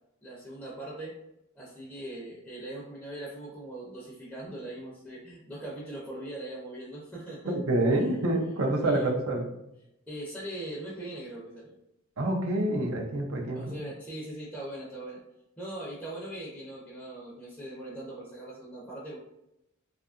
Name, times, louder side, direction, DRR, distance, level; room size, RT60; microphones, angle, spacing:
voice 1, 0.2-1.1 1.6-7.6 7.9-8.2 8.8-9.1 10.1-11.7 13.5-15.2 15.6-19.2, right 1 dB, 5° left, -6 dB, 0.5 m, -40 dB
voice 2, 7.4-9.5 12.2-13.8, right 1 dB, 75° right, 2 dB, 0.5 m, -27 dB
2.7 x 2.4 x 2.4 m, 0.85 s
head